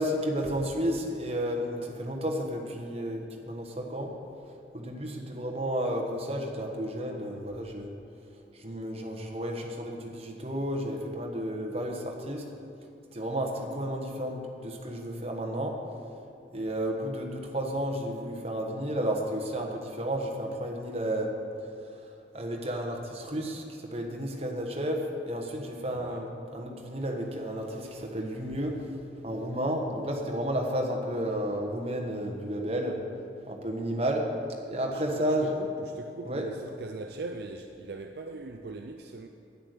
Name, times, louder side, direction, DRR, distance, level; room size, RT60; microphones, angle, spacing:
voice 1, 0.0-4.1 4.7-7.9 8.6-12.4 13.1-15.7 16.5-21.3 22.3-23.6 23.9-26.3 26.5-28.7 29.2-33.0 33.5-34.3 34.7-35.5 36.2-36.4, equal, 35° right, 1 dB, 1.3 m, -32 dB
voice 2, 25.9-26.3 34.9-39.3, right 3 dB, 60° right, 4 dB, 0.5 m, -41 dB
9.9 x 9.5 x 6.7 m, 2.6 s
head